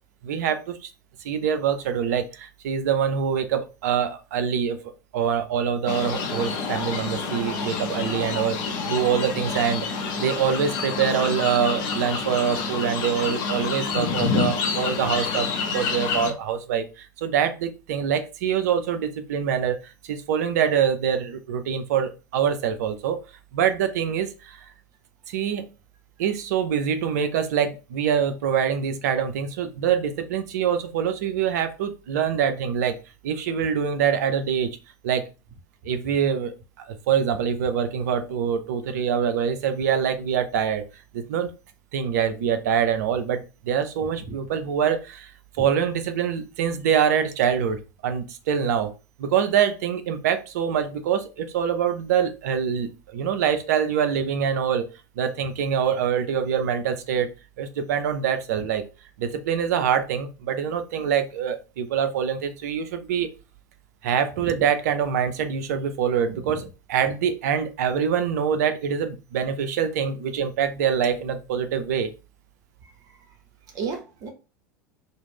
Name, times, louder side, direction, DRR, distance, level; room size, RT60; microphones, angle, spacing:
voice 1, 0.2-0.9 1.2-4.8 5.1-23.2 23.5-24.7 25.3-25.7 26.2-33.0 33.2-34.8 35.0-35.2 35.8-40.8 41.1-41.5 41.9-45.3 45.6-48.9 49.2-54.9 55.2-58.8 59.2-63.3 64.0-72.1, right 8 dB, 60° right, 9 dB, 0.4 m, -25 dB
sound 1, 5.9-16.3, left 5 dB, 45° left, 0.6 m, -28 dB
voice 2, 66.3-66.6 73.7-74.3, right 5 dB, 35° right, 4 dB, 0.7 m, -33 dB
2.3 x 2.0 x 3.3 m, 0.31 s
figure-of-eight pair, 80°, 10 cm